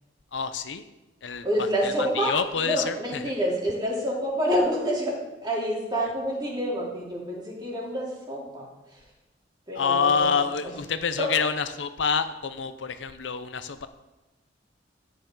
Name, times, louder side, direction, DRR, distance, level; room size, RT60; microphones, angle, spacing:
voice 1, 0.3-0.9 1.2-1.4 1.8-3.2 9.7-13.9, left 6 dB, 75° left, 11 dB, 0.6 m, -27 dB
voice 2, 1.2-5.1 5.4-9.0 9.7-10.8 11.2-11.3, equal, 25° right, -4 dB, 3.2 m, -28 dB
13.0 x 9.4 x 3.8 m, 1.0 s
head